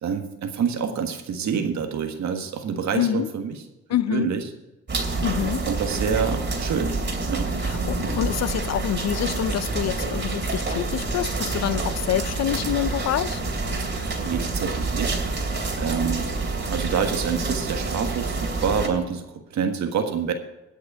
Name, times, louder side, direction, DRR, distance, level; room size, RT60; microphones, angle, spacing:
voice 1, 0.0-3.6 4.1-4.4 5.4-6.9 7.3-7.5 14.2-15.2 15.8-16.3 16.7-20.3, right 6 dB, 65° right, 5 dB, 1.6 m, -27 dB
voice 2, 2.9-3.3 3.9-4.3 5.2-5.6 7.6-13.4, left 11 dB, 60° left, 16 dB, 0.6 m, -26 dB
sound 1, 4.9-18.9, right 3 dB, 35° right, 2.8 m, -27 dB
17.5 x 6.5 x 4.8 m, 0.99 s
cardioid pair, 90°, 30 cm